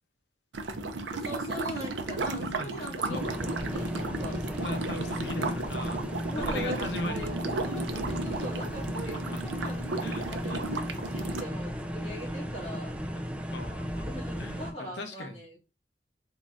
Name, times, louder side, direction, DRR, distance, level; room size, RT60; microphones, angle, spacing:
sound 1, 0.5-11.4, right 2 dB, 90° right, 0.6 m, -34 dB
voice 1, 1.1-4.4 6.3-12.9 14.0-15.6, equal, 35° left, 2.2 m, -41 dB
voice 2, 2.3-3.6 4.2-7.3 9.3-9.4 10.0-10.7 12.1-12.2 13.5-14.1 14.4-15.4, left 2 dB, 85° left, 0.9 m, -40 dB
sound 2, 3.1-14.7, equal, 5° right, 0.5 m, -35 dB
3.8 x 3.7 x 2.5 m
head